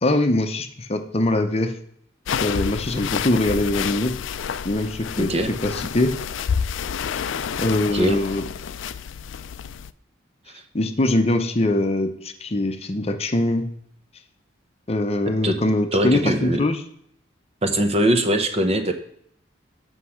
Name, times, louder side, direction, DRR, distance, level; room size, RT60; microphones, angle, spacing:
voice 1, 0.0-1.7 2.4-4.1 4.6-5.3 5.6-6.1 7.6-8.4 10.7-13.7 14.9-16.8, left 1 dB, 30° left, 7 dB, 0.7 m, -22 dB
sound 1, 2.3-9.9, left 7 dB, 75° left, 0.4 m, -29 dB
voice 2, 5.2-5.5 7.9-8.2 15.4-15.6 15.9-16.6 17.6-18.9, right 1 dB, 30° right, 7 dB, 0.8 m, -21 dB
8.3 x 5.4 x 5.7 m, 0.67 s
head